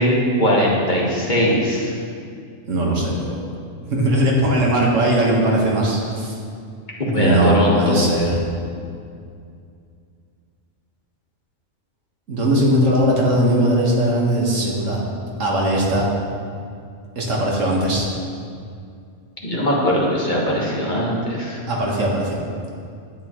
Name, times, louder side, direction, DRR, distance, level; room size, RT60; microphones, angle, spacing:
voice 1, 0.0-1.9 7.0-8.0 19.4-21.6, equal, 40° left, -4 dB, 1.6 m, -20 dB
voice 2, 2.7-3.5 3.9-6.3 7.1-8.4 12.3-15.0 15.4-16.1 17.2-18.1 21.7-22.4, right 1 dB, 75° right, -3 dB, 1.8 m, -19 dB
10.5 x 8.7 x 3.1 m, 2.3 s
omnidirectional pair, 1.3 m